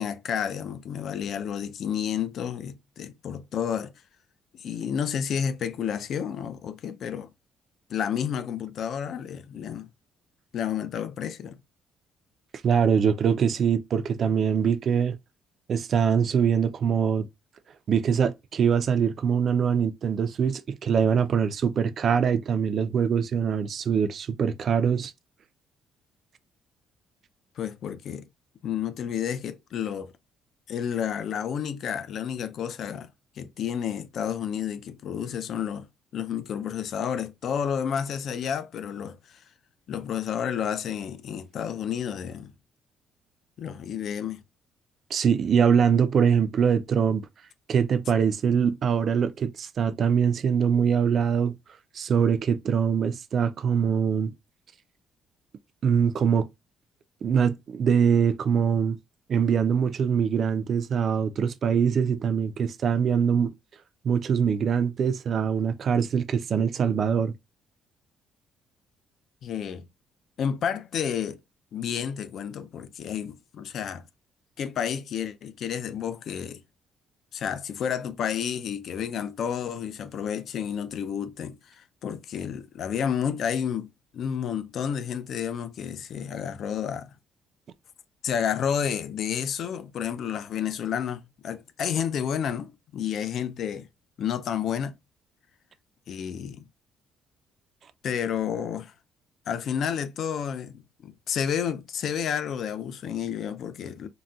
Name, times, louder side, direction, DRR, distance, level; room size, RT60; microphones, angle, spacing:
voice 1, 0.0-3.9 4.5-7.3 7.9-9.9 10.5-11.6 27.6-28.3 28.6-30.1 30.7-33.1 33.4-35.9 36.1-39.4 39.9-42.5 43.6-44.4 69.4-69.9 70.4-71.4 71.7-74.0 74.6-76.6 77.3-87.1 88.2-93.9 94.2-94.9 96.1-96.6 98.0-98.9 99.5-104.1, left 8 dB, 50° left, 0.4 m, -30 dB
voice 2, 12.6-15.2 15.7-17.3 17.9-25.1 45.1-47.3 47.7-51.6 51.9-54.3 55.8-56.5 57.2-59.0 59.3-63.5 64.0-67.3, right 7 dB, 40° right, 0.3 m, -23 dB
3.9 x 2.1 x 2.3 m
cardioid pair, 165°, 0 cm